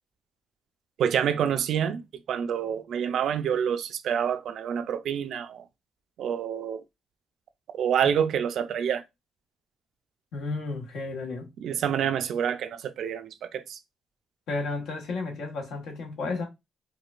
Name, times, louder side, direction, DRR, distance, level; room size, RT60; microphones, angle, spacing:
voice 1, 1.0-2.0 2.3-5.6 6.2-6.8 7.7-9.0 11.6-13.8, right 8 dB, 70° right, 0.5 m, -27 dB
voice 2, 10.3-11.5 14.5-16.4, left 3 dB, 80° left, 1.2 m, -33 dB
4.7 x 2.3 x 2.4 m
cardioid pair, 90°, 0 cm